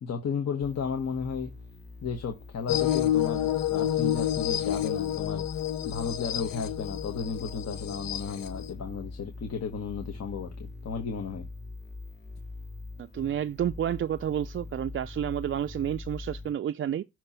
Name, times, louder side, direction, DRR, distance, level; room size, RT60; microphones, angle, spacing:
voice 1, 0.0-1.5 2.0-5.4 5.8-11.5, left 6 dB, 50° left, 1.3 m, -34 dB
sound 1, 0.6-16.5, left 2 dB, 30° left, 2.1 m, -43 dB
sound 2, 2.7-8.7, left 12 dB, 80° left, 0.8 m, -29 dB
voice 2, 13.0-17.0, right 9 dB, 40° right, 0.4 m, -30 dB
6.7 x 3.0 x 5.6 m
supercardioid pair, 60°, 33 cm